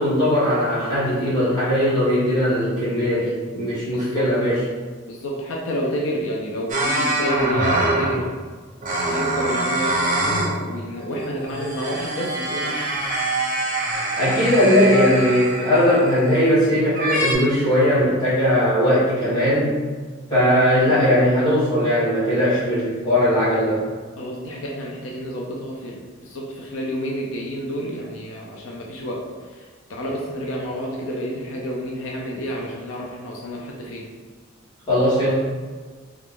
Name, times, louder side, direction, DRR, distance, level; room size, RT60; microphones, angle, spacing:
voice 1, 0.0-4.6 14.1-19.7 20.3-23.8 34.9-35.4, equal, 20° left, -11 dB, 1.4 m, -19 dB
voice 2, 3.9-4.3 5.1-8.3 9.1-13.0 24.2-34.1, equal, 80° left, -2 dB, 0.5 m, -29 dB
sound 1, 6.7-8.3 8.8-10.6 11.0-16.5 16.9-17.3, right 2 dB, 40° right, 0.6 m, -24 dB
2.9 x 2.4 x 3.6 m, 1.5 s
head